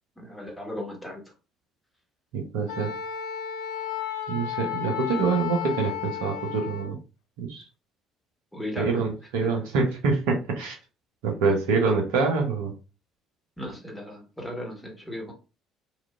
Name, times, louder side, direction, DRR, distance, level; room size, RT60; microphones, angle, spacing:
voice 1, 0.2-1.2 8.5-9.0 9.4-9.5 13.6-15.3, left 1 dB, 5° left, -1 dB, 1.1 m, -36 dB
voice 2, 2.3-2.9 4.3-7.0 7.4-7.6 8.8-10.8 11.2-12.7, right 4 dB, 65° right, 2 dB, 0.7 m, -25 dB
Wind instrument woodwind instrument, 2.7-7.0, left 9 dB, 60° left, 0.3 m, -33 dB
3.0 x 2.4 x 2.4 m, 0.32 s
figure-of-eight pair, 55°, 0 cm